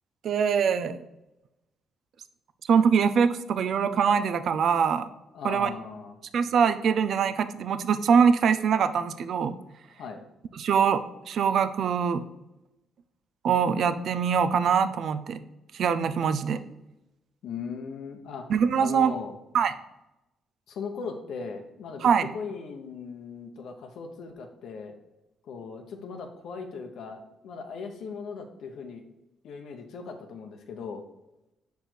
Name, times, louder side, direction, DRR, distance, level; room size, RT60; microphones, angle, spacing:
voice 1, 0.2-1.0 2.7-5.1 5.4-5.7 6.3-9.5 10.6-12.2 13.4-15.4 15.7-16.6 18.5-19.1 19.5-19.7 22.0-22.3, right 6 dB, 65° right, 12 dB, 0.4 m, -23 dB
voice 2, 5.3-6.2 9.9-10.2 17.4-18.5 18.8-19.3 20.7-24.9 25.4-29.0 29.4-31.0, left 5 dB, 75° left, 4 dB, 0.7 m, -38 dB
5.2 x 4.6 x 4.3 m, 0.94 s
cardioid pair, 90°, 0 cm